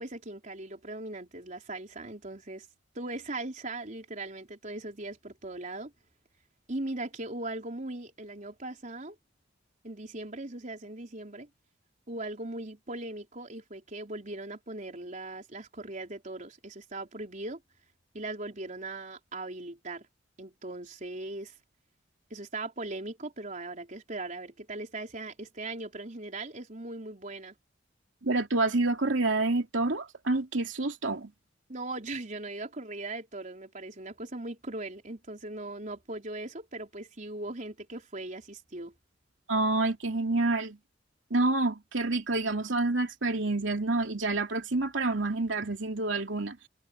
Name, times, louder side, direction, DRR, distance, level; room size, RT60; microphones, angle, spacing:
voice 1, 0.0-2.7 2.9-5.9 6.7-9.2 9.8-11.5 12.1-17.6 18.1-20.1 20.4-21.6 22.3-27.5 31.7-38.9, right 2 dB, 45° right, 4.1 m, -39 dB
voice 2, 28.2-31.3 39.5-40.8 41.3-46.6, right 2 dB, 85° right, 2.7 m, -28 dB
head